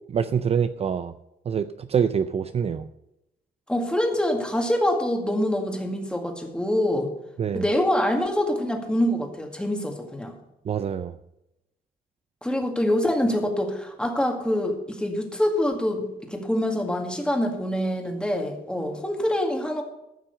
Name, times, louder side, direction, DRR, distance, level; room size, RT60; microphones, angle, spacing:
voice 1, 0.1-1.1 1.5-2.9 7.4-7.7 10.7-11.1, right 7 dB, 40° right, 11 dB, 0.4 m, -25 dB
voice 2, 3.7-7.1 7.5-10.3 12.4-19.8, left 1 dB, 5° left, 3 dB, 2.0 m, -25 dB
14.0 x 6.1 x 6.6 m, 0.89 s
cardioid pair, 125°, 17 cm